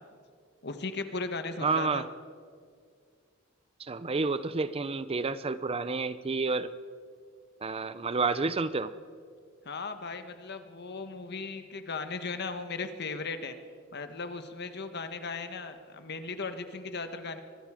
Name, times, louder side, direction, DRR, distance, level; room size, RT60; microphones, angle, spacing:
voice 1, 0.6-2.0 9.6-13.6 13.9-17.4, left 4 dB, 55° left, 9 dB, 1.5 m, -37 dB
voice 2, 1.6-2.1 3.8-6.7 7.6-8.9, right 4 dB, 30° right, 14 dB, 0.6 m, -30 dB
24.0 x 22.0 x 5.0 m, 2.1 s
head